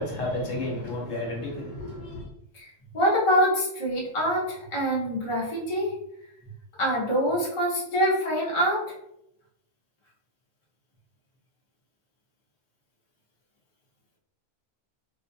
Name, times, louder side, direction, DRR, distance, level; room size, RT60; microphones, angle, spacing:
voice 1, 0.0-2.2, left 1 dB, 80° left, -2 dB, 1.2 m, -31 dB
voice 2, 2.9-5.9 6.8-8.8, equal, 30° left, -5 dB, 0.7 m, -25 dB
2.6 x 2.2 x 2.6 m, 0.78 s
omnidirectional pair, 1.3 m